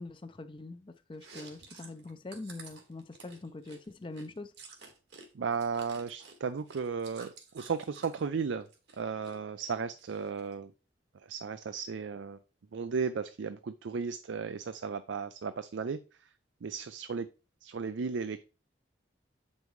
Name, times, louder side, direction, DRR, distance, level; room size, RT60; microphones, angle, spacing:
voice 1, 0.0-4.5, left 2 dB, 25° left, 0.4 m, -43 dB
Chewing mastication, 1.1-5.3 5.5-8.2 8.6-9.4 9.6-10.5, right 4 dB, 65° right, 1.6 m, -51 dB
voice 2, 5.3-8.7 9.0-10.7 11.1-12.4 12.7-16.3 16.6-17.3 17.6-18.4, right 5 dB, 85° right, 0.4 m, -35 dB
7.9 x 5.4 x 3.1 m
head